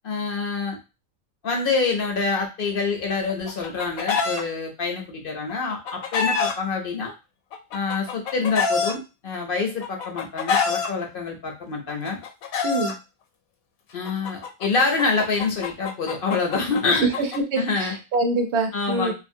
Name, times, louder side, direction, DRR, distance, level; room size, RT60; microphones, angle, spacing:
voice 1, 0.0-0.8 1.4-7.1 7.7-12.2 13.9-17.2 17.6-18.0 18.7-19.1, left 4 dB, 60° left, 2 dB, 0.6 m, -26 dB
Chicken rooster, 3.3-4.4 5.5-6.5 7.5-8.9 9.8-10.9 11.9-12.9 14.1-17.4, left 5 dB, 80° left, 1.0 m, -26 dB
voice 2, 12.6-13.0 16.9-19.1, right 3 dB, 60° right, 4 dB, 0.8 m, -25 dB
2.5 x 2.5 x 2.6 m, 0.28 s
omnidirectional pair, 1.5 m